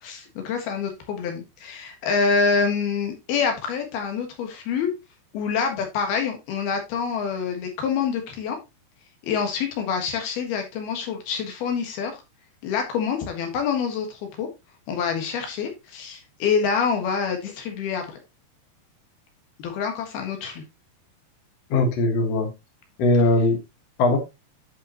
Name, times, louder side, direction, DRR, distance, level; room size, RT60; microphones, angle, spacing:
voice 1, 0.0-4.9 5.3-8.6 9.2-12.1 12.6-14.5 14.9-18.2 19.6-20.6, left 6 dB, 70° left, 3.4 m, -26 dB
voice 2, 21.7-22.5 23.0-23.6 24.0-24.2, left 2 dB, 55° left, 2.0 m, -20 dB
11.0 x 5.5 x 2.9 m
omnidirectional pair, 4.8 m